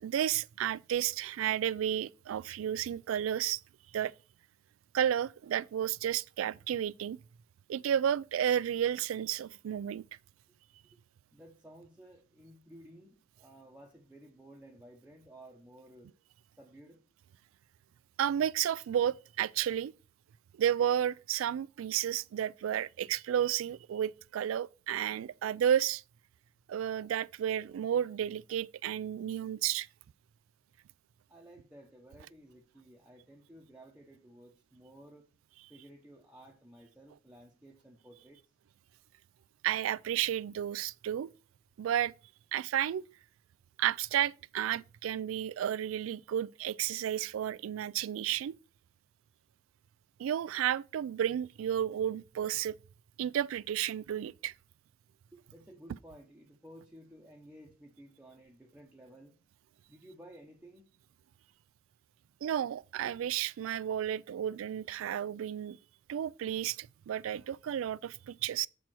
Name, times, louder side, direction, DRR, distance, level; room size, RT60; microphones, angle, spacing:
voice 1, 0.0-3.6 3.9-4.1 4.9-7.2 7.7-10.0 18.2-19.9 20.5-26.0 26.7-29.9 39.6-41.3 41.8-42.1 42.5-43.1 43.8-48.6 50.2-52.8 53.2-54.5 62.4-65.8 66.1-68.7, right 10 dB, 90° right, 0.3 m, -32 dB
voice 2, 11.3-16.1 16.6-17.0 31.3-35.3 35.7-38.4 55.3-59.3 59.9-60.9, right 1 dB, 5° right, 0.8 m, -55 dB
7.2 x 4.5 x 6.1 m
head